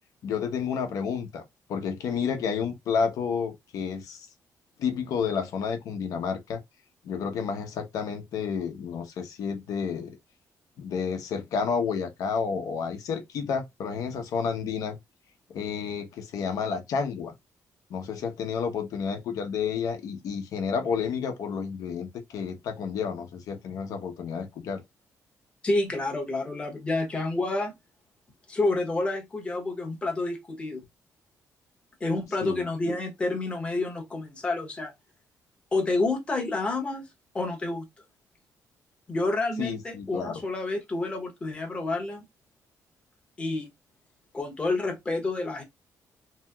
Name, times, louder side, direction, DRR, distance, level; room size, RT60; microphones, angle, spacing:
voice 1, 0.2-1.4 1.7-4.3 4.8-6.6 7.0-10.2 10.8-15.0 15.5-17.3 17.9-24.8 32.4-32.7 39.6-40.4, left 6 dB, 70° left, 0.7 m, -30 dB
voice 2, 25.6-27.7 28.5-30.8 32.0-34.9 35.7-37.1 37.3-37.9 39.1-42.2 43.4-43.7 44.3-45.6, left 2 dB, 20° left, 0.8 m, -29 dB
2.9 x 2.8 x 2.2 m
cardioid pair, 170°, 6 cm